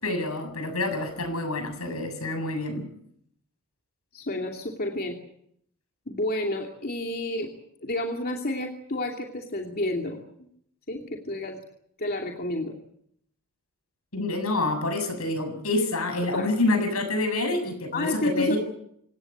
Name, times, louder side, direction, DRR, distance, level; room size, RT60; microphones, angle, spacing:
voice 1, 0.0-2.9 14.1-18.6, left 2 dB, 75° left, 8 dB, 7.2 m, -27 dB
voice 2, 4.1-5.2 6.1-7.5 7.8-10.2 10.9-11.6 12.0-12.7 16.3-16.5 17.9-18.5, left 1 dB, 45° left, 1 dB, 2.7 m, -30 dB
27.0 x 17.5 x 8.7 m, 0.71 s
head